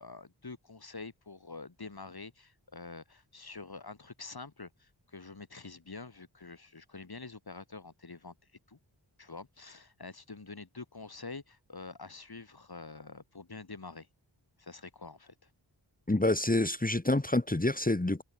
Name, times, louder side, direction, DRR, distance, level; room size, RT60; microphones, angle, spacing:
voice 1, 0.0-8.3 8.7-8.8 9.2-14.1 14.6-15.5, left 3 dB, 55° left, 6.4 m, -46 dB
voice 2, 16.1-18.2, left 2 dB, 20° left, 2.4 m, -27 dB
wide cardioid pair, 75°, 44 cm